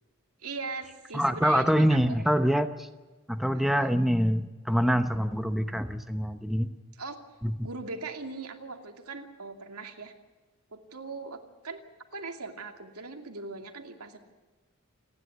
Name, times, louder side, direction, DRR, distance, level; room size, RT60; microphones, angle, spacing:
voice 1, 0.4-2.0 3.5-3.9 6.9-7.3 7.6-10.1 10.7-11.8 12.1-14.2, right 4 dB, 85° right, 4 dB, 2.6 m, -40 dB
voice 2, 1.1-2.9 3.3-6.7 7.4-7.5, equal, ahead, 8 dB, 0.8 m, -25 dB
28.5 x 11.0 x 9.7 m, 1.3 s
head